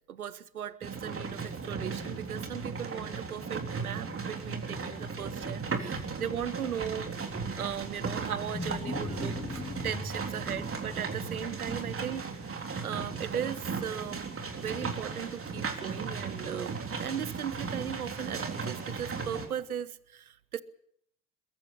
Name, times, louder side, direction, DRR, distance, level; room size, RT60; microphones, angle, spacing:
voice 1, 0.1-20.6, right 9 dB, 90° right, 0.8 m, -38 dB
sound 1, 0.8-19.5, right 4 dB, 30° right, 3.7 m, -36 dB
Wild animals, 7.4-12.5, left 3 dB, 15° left, 3.4 m, -41 dB
22.0 x 15.0 x 8.7 m
figure-of-eight pair, 55°, 42 cm